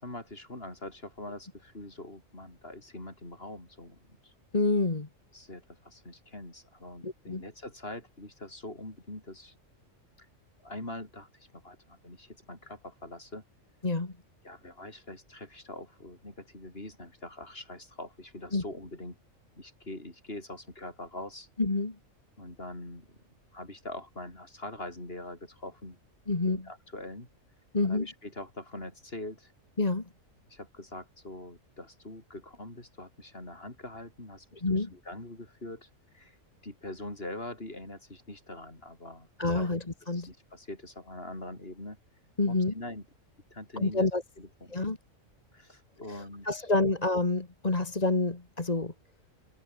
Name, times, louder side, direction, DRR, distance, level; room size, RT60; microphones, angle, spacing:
voice 1, 0.0-4.3 5.3-9.5 10.2-10.3 10.6-13.4 14.4-19.2 19.6-21.5 22.4-23.2 23.5-26.0 26.5-27.3 27.8-29.5 30.5-35.9 36.1-36.4 36.6-39.7 40.0-42.0 42.5-43.0 43.5-44.1 44.4-44.8 45.5-47.0, left 1 dB, 45° left, 6.1 m, -43 dB
voice 2, 4.5-5.1 7.0-7.4 13.8-14.1 18.5-18.6 21.6-21.9 26.3-26.6 27.7-28.1 29.8-30.1 34.6-34.9 39.4-40.3 42.4-42.7 43.8-44.2 44.7-45.0 46.1-46.2 46.4-48.9, left 2 dB, 30° left, 2.0 m, -28 dB
omnidirectional pair, 1.4 m